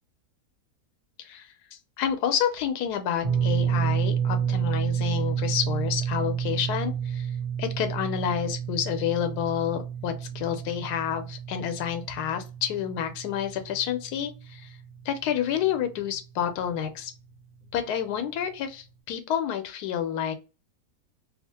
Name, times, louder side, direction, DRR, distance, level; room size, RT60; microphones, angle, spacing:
voice 1, 2.0-7.3 7.6-14.7 15.1-17.1 17.7-20.3, left 9 dB, 90° left, 8 dB, 1.1 m, -29 dB
sound 1, 3.2-15.5 15.7-16.0 17.6-17.7, right 8 dB, 40° right, 1.1 m, -30 dB
2.7 x 2.3 x 2.8 m, 0.31 s
omnidirectional pair, 1.7 m